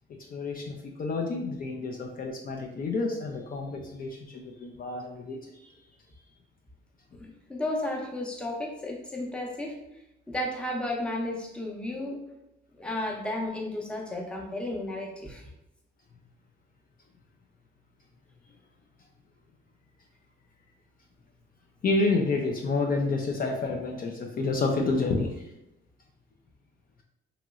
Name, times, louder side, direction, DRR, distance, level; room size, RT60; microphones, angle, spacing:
voice 1, 0.1-5.4 21.8-25.5, left 3 dB, 45° left, 2 dB, 0.5 m, -29 dB
voice 2, 7.2-9.8 10.3-12.2 12.8-15.4, left 1 dB, 5° left, -1 dB, 0.7 m, -33 dB
2.9 x 2.9 x 2.4 m, 0.88 s
cardioid pair, 90°, 20 cm